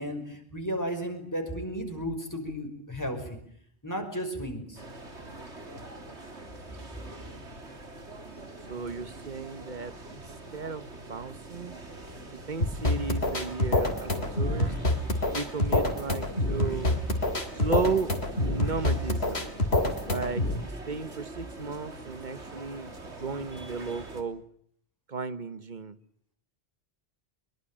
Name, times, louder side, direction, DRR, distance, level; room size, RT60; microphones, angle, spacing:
voice 1, 0.0-3.4 3.8-4.8, equal, 15° left, 5.8 m, -34 dB
sound 1, 4.8-24.2, right 2 dB, 75° right, 3.5 m, -44 dB
voice 2, 8.7-10.2 10.5-11.7 12.5-14.7 15.3-17.0 17.5-18.1 18.4-19.5 20.0-20.5 20.9-24.4 25.1-26.0, right 4 dB, 45° right, 1.3 m, -34 dB
sound 2, 12.6-20.6, left 1 dB, 65° left, 3.3 m, -27 dB
24.0 x 22.5 x 8.7 m
omnidirectional pair, 1.1 m